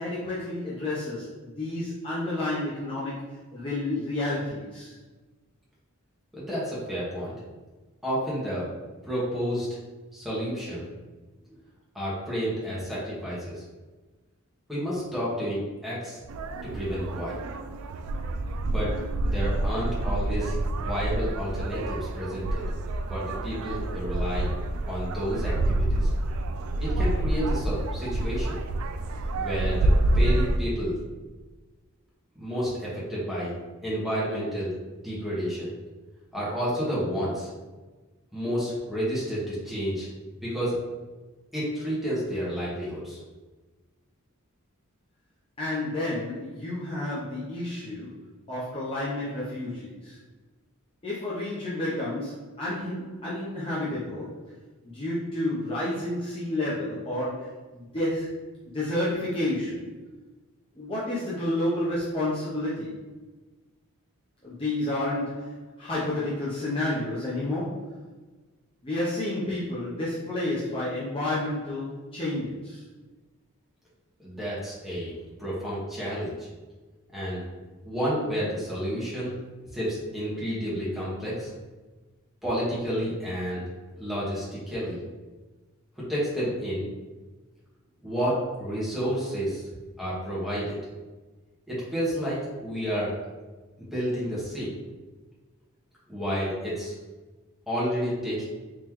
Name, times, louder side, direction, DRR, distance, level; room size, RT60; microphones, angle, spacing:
voice 1, 0.0-3.2 3.5-4.9 45.6-48.1 48.5-50.2 51.0-54.5 54.8-58.4 58.7-59.9 60.8-62.9 64.4-68.0 68.8-72.8, left 1 dB, 25° left, -8 dB, 0.6 m, -30 dB
voice 2, 6.3-7.4 8.0-8.7 9.1-9.7 10.1-10.9 11.9-13.6 14.7-16.2 16.6-17.4 18.6-18.9 19.2-22.6 23.1-24.5 24.9-26.1 26.8-28.6 29.3-31.0 32.4-33.5 33.8-34.7 35.0-35.7 36.3-37.5 38.3-40.1 40.4-40.8 41.5-43.2 74.2-76.5 77.1-77.4 77.8-79.4 79.7-81.5 82.4-83.6 84.0-85.0 86.0-86.9 88.0-89.6 90.0-90.8 91.7-93.1 93.9-94.7 96.1-97.0 97.7-98.5, equal, ahead, -9 dB, 1.2 m, -30 dB
sound 1, 16.3-30.6, right 1 dB, 75° right, 0.3 m, -27 dB
3.7 x 3.1 x 3.0 m, 1.3 s
head